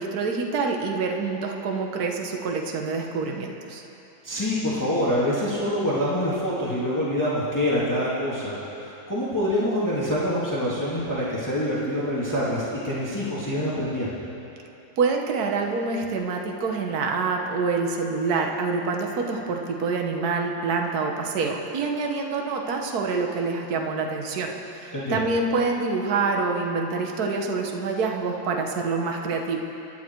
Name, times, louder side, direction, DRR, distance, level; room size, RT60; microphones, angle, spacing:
voice 1, 0.0-3.8 15.0-29.6, right 4 dB, 55° right, 2 dB, 1.6 m, -26 dB
voice 2, 4.2-14.2 24.9-25.2, equal, 10° left, -8 dB, 2.2 m, -26 dB
25.0 x 10.5 x 4.6 m, 3.0 s
omnidirectional pair, 2.1 m